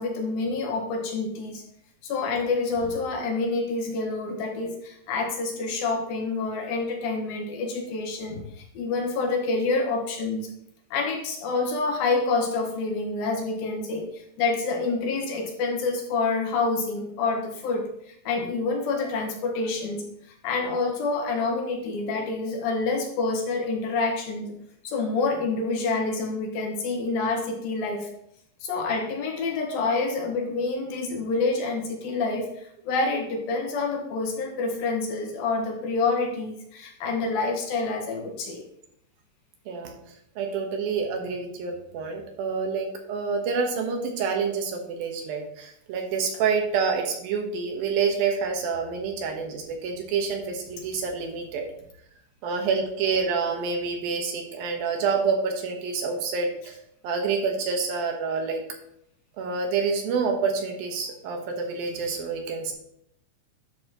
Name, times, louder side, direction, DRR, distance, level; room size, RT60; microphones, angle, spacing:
voice 1, 0.0-1.6 2.0-8.4 8.7-10.5 10.9-20.0 20.4-24.5 24.8-28.1 28.6-38.6, left 3 dB, 85° left, 1 dB, 3.3 m, -27 dB
voice 2, 40.4-51.6 52.4-56.8 57.0-58.6 59.4-62.7, right 5 dB, 85° right, 3 dB, 3.1 m, -27 dB
10.5 x 6.7 x 3.0 m, 0.73 s
omnidirectional pair, 4.1 m